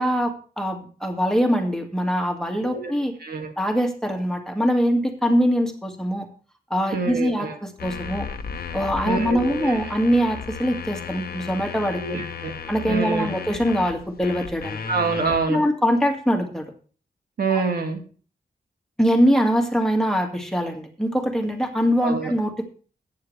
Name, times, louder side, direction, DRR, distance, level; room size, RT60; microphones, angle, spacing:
voice 1, 0.0-3.1 3.6-6.3 6.7-8.3 8.7-12.2 12.7-14.8 15.5-16.7 17.5-17.6 19.0-22.6, equal, 5° left, 2 dB, 2.2 m, -23 dB
voice 2, 3.2-3.5 6.9-7.6 9.1-9.8 12.0-12.5 12.9-13.3 14.9-15.6 17.4-18.0 22.0-22.3, right 4 dB, 80° right, 4 dB, 2.3 m, -26 dB
sound 1, 7.8-15.4, left 6 dB, 80° left, 1.1 m, -35 dB
14.5 x 9.5 x 3.4 m, 0.39 s
wide cardioid pair, 110°, 16 cm